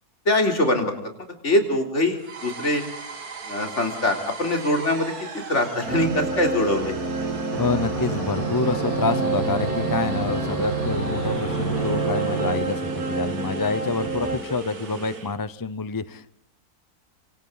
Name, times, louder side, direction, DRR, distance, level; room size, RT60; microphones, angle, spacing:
voice 1, 0.3-0.9 1.4-2.8 3.5-6.9, left 1 dB, 50° left, 4 dB, 4.0 m, -23 dB
sound 1, 2.2-15.4, right 4 dB, 85° right, 2.6 m, -38 dB
sound 2, 5.8-14.4, right 4 dB, 65° right, 2.9 m, -28 dB
voice 2, 7.3-16.4, left 3 dB, 20° left, 14 dB, 0.5 m, -27 dB
sound 3, 7.5-12.6, left 1 dB, 70° left, 4.5 m, -31 dB
27.0 x 26.0 x 4.0 m, 0.65 s
omnidirectional pair, 1.6 m